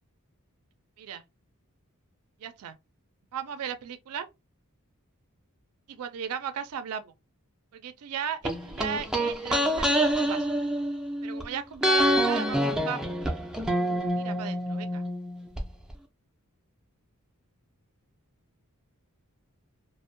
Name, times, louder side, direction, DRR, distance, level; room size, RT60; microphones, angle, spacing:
voice 1, 2.4-2.8 3.3-4.3 5.9-7.1 7.7-10.5 11.2-13.1 14.2-15.0, right 7 dB, 75° right, 0.4 m, -36 dB
sound 1, 8.4-11.4 11.8-15.6 15.9-16.0, equal, 5° right, 0.3 m, -27 dB
2.5 x 2.0 x 2.5 m
head